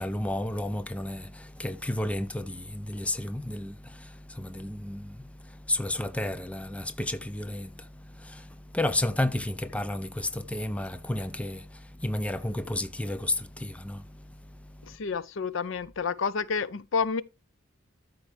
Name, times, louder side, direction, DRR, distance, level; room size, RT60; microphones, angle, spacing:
voice 1, 0.0-15.0, left 1 dB, 5° left, 0.5 m, -32 dB
voice 2, 14.8-17.2, left 5 dB, 65° left, 0.5 m, -29 dB
13.5 x 4.6 x 3.3 m
head